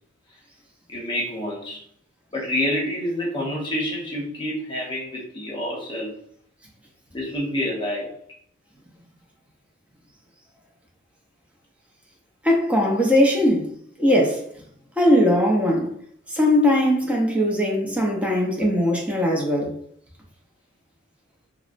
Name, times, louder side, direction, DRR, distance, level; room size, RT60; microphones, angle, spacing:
voice 1, 0.9-1.8 2.3-6.1 7.1-8.2, left 1 dB, 25° left, 0.8 m, -28 dB
voice 2, 12.4-13.7 14.0-14.4 15.0-15.9 16.3-19.7, left 1 dB, 5° right, 0.6 m, -20 dB
4.0 x 2.0 x 2.5 m
head